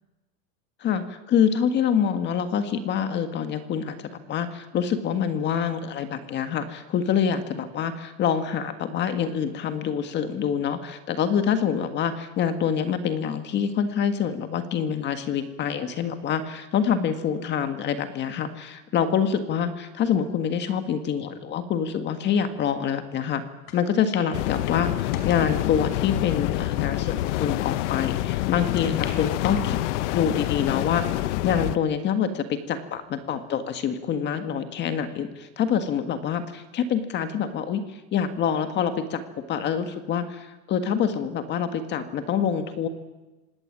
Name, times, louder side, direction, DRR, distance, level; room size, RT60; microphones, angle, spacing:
voice 1, 0.8-23.4 23.7-29.8 30.1-31.0 31.4-39.2 39.5-42.9, left 7 dB, 25° left, 8 dB, 1.7 m, -26 dB
sound 1, 23.7-23.8 24.1-24.3 24.7-25.5 26.2-26.3 27.0-27.1 27.4-27.5 28.8-29.1 29.4-30.2 30.7-31.2 31.7-31.8 32.9-33.4, left 8 dB, 85° left, 5.0 m, -37 dB
sound 2, 24.3-31.8, left 16 dB, 55° left, 0.8 m, -27 dB
26.0 x 18.0 x 9.8 m, 1.1 s
supercardioid pair, 170°, 42 cm